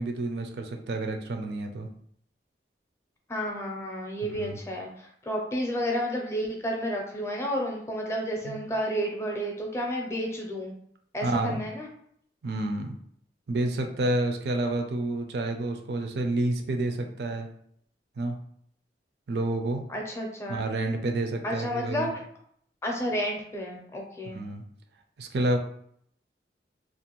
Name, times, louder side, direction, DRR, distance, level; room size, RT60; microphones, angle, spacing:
voice 1, 0.0-1.9 4.2-4.6 8.4-8.6 11.2-11.6 12.4-12.9 13.5-17.5 18.2-18.3 19.3-19.8 20.5-22.1 24.3-24.6 25.2-25.6, right 2 dB, 70° right, 4 dB, 0.4 m, -29 dB
voice 2, 3.3-10.7 11.1-11.9 19.9-20.7 21.4-22.2 22.8-24.4, equal, 15° left, 0 dB, 0.5 m, -31 dB
2.5 x 2.2 x 2.9 m, 0.66 s
head